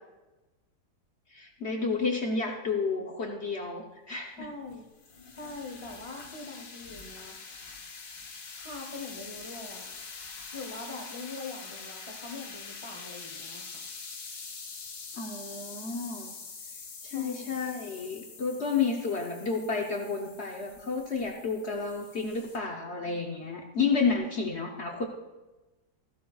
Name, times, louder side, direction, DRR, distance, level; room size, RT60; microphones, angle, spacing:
voice 1, 1.3-4.5 15.2-16.4 17.0-25.0, left 4 dB, 50° left, 2 dB, 0.9 m, -31 dB
sound 1, 4.4-22.6, left 5 dB, 75° left, 2.0 m, -45 dB
voice 2, 4.4-4.8 5.3-7.6 8.6-9.9 10.5-13.9 17.0-17.6, left 3 dB, 30° left, 1 dB, 0.6 m, -43 dB
14.5 x 12.0 x 2.4 m, 1.1 s
omnidirectional pair, 1.9 m